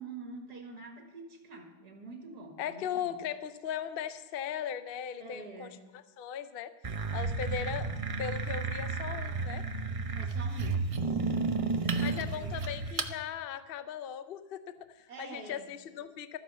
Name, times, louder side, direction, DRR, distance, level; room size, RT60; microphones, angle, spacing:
voice 1, 0.0-3.2 5.2-5.8 10.1-12.6 15.1-15.7, right 3 dB, 75° right, 3 dB, 2.3 m, -46 dB
voice 2, 2.6-6.7 7.1-7.9 8.2-9.7 12.0-16.4, left 9 dB, 50° left, 11 dB, 0.7 m, -38 dB
sound 1, 6.8-13.1, right 4 dB, 55° right, 0.3 m, -32 dB
13.5 x 9.7 x 6.9 m, 1.1 s
omnidirectional pair, 1.7 m